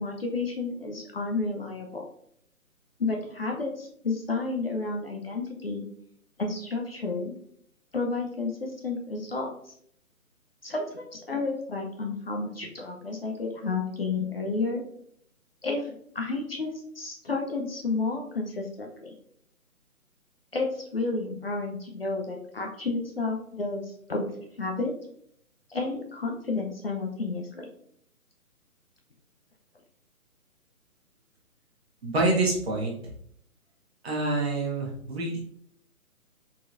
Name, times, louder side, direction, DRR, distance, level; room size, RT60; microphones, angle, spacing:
voice 1, 0.0-2.0 3.0-5.8 6.4-7.3 7.9-9.5 10.6-14.8 15.6-19.1 20.5-24.9 25.7-27.7, left 3 dB, 45° left, 1 dB, 0.5 m, -31 dB
voice 2, 32.0-32.9 34.0-35.4, right 2 dB, 45° right, -2 dB, 1.1 m, -26 dB
3.8 x 2.8 x 2.4 m, 0.68 s
figure-of-eight pair, 140°, 44 cm